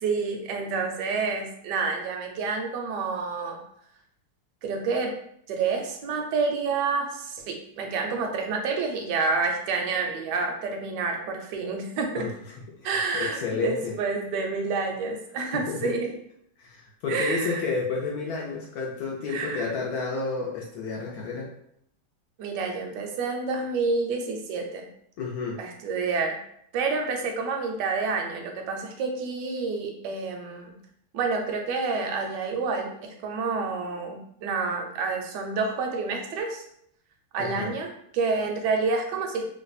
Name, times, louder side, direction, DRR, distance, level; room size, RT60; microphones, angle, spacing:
voice 1, 0.0-3.6 4.6-5.1 5.5-12.3 12.8-16.1 17.1-17.6 19.3-19.7 22.4-24.8 25.6-26.4 26.7-30.7 31.1-36.6 37.3-37.9 38.1-39.4, right 4 dB, 70° right, 2 dB, 1.1 m, -28 dB
voice 2, 12.8-13.9 15.4-15.9 16.6-21.5 25.2-25.6 37.4-37.8, left 4 dB, 75° left, -2 dB, 0.8 m, -31 dB
3.2 x 2.2 x 4.0 m, 0.70 s
omnidirectional pair, 2.3 m